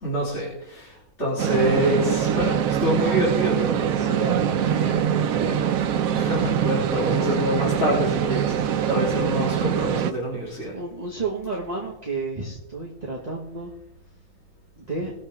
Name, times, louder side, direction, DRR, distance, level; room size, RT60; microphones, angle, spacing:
voice 1, 0.0-3.9 6.1-8.6 8.9-10.7, equal, 55° left, -7 dB, 3.8 m, -26 dB
sound 1, 1.4-10.1, right 9 dB, 85° right, 1.1 m, -23 dB
voice 2, 3.9-5.6 6.9-7.3 10.7-13.7 14.8-15.1, right 3 dB, 30° right, -5 dB, 1.9 m, -32 dB
20.5 x 7.3 x 3.7 m, 0.83 s
omnidirectional pair, 1.4 m